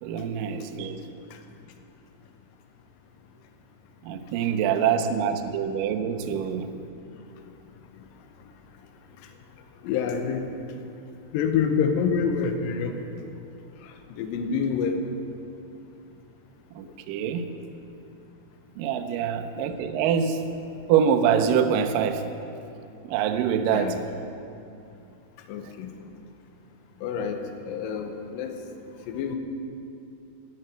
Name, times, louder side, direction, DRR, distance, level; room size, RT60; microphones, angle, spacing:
voice 1, 0.0-1.0 4.0-6.7 16.8-17.5 18.8-20.4 20.9-22.3 23.0-24.0 25.6-25.7, right 8 dB, 85° right, 7 dB, 1.9 m, -25 dB
voice 2, 9.8-10.5 11.3-12.9 14.2-15.0 23.7-24.0 25.5-25.9 27.0-27.4 27.6-28.5 29.1-29.3, left 6 dB, 75° left, 5 dB, 2.2 m, -27 dB
13.0 x 5.9 x 9.1 m, 2.7 s
omnidirectional pair, 4.8 m